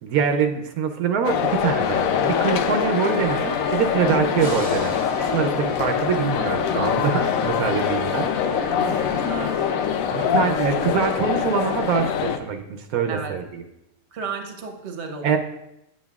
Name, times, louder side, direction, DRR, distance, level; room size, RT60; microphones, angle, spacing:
voice 1, 0.0-8.7 10.1-13.6 15.2-15.4, right 6 dB, 85° right, 5 dB, 1.1 m, -24 dB
sound 1, 1.2-12.4, left 8 dB, 75° left, 1.0 m, -24 dB
Trumpet, 2.8-9.9, equal, 45° left, 0.8 m, -38 dB
sound 2, 4.4-7.6, right 2 dB, 30° right, 0.7 m, -40 dB
voice 2, 5.3-6.1 8.8-9.6 10.0-10.6 13.1-13.4 14.1-15.4, right 5 dB, 55° right, 4 dB, 1.1 m, -34 dB
9.2 x 7.3 x 2.3 m, 0.86 s
omnidirectional pair, 1.5 m